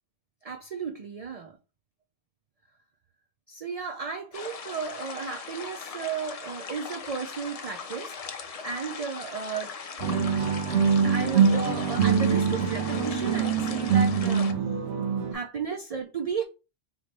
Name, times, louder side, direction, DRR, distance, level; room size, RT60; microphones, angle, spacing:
voice 1, 0.4-1.6 3.5-10.2 11.0-14.5 15.3-16.4, right 6 dB, 55° right, 0.4 m, -34 dB
sound 1, 4.3-14.5, left 6 dB, 50° left, 0.4 m, -39 dB
sound 2, 10.0-15.3, right 6 dB, 80° right, 1.1 m, -24 dB
4.0 x 3.1 x 3.2 m
omnidirectional pair, 1.2 m